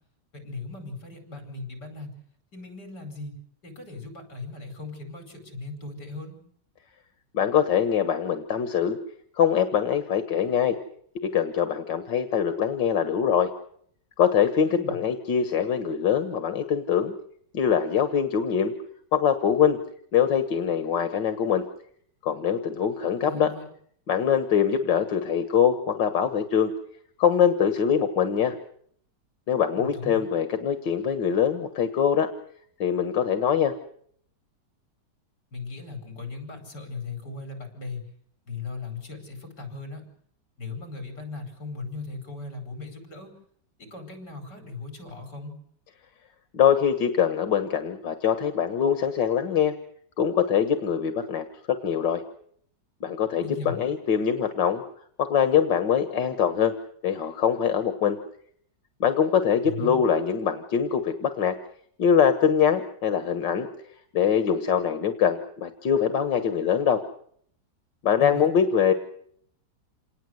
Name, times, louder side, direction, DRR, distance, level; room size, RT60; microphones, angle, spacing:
voice 1, 0.3-2.1 2.5-6.4 14.6-15.0 23.2-23.7 29.7-30.2 35.5-38.0 38.5-40.1 40.6-43.3 43.8-45.6 53.4-53.8 59.6-60.0 68.2-68.5, left 3 dB, 70° left, 6 dB, 5.6 m, -38 dB
voice 2, 7.3-9.0 9.3-10.8 11.3-13.5 14.2-17.1 17.5-18.7 19.1-19.8 20.1-21.6 22.2-23.5 24.1-26.7 27.2-28.6 29.5-32.3 32.8-33.7 46.5-49.7 50.2-51.4 51.8-52.2 53.0-54.8 55.2-56.7 57.0-58.2 59.0-61.5 62.0-63.7 64.1-67.0 68.0-68.9, left 8 dB, 90° left, 9 dB, 2.1 m, -23 dB
27.5 x 19.5 x 7.9 m, 0.66 s
omnidirectional pair, 1.9 m